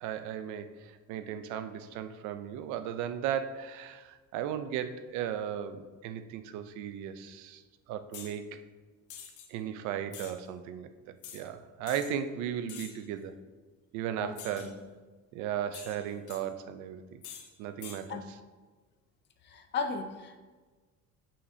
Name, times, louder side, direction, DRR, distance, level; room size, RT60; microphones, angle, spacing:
voice 1, 0.0-7.6 7.9-8.6 9.5-10.9 11.3-13.4 13.9-14.8 15.3-17.2 17.6-18.2, right 9 dB, 70° right, 10 dB, 0.5 m, -36 dB
sound 1, 8.1-8.4 9.1-9.5 10.1-10.3 11.2-11.4 11.9-12.1 12.7-13.1 14.4-14.7 15.7-16.4 17.2-17.5 17.8-18.0, left 8 dB, 75° left, 1.0 m, -46 dB
voice 2, 19.5-20.4, left 5 dB, 35° left, 7 dB, 0.5 m, -35 dB
8.1 x 5.7 x 2.7 m, 1.3 s
cardioid pair, 165°, 31 cm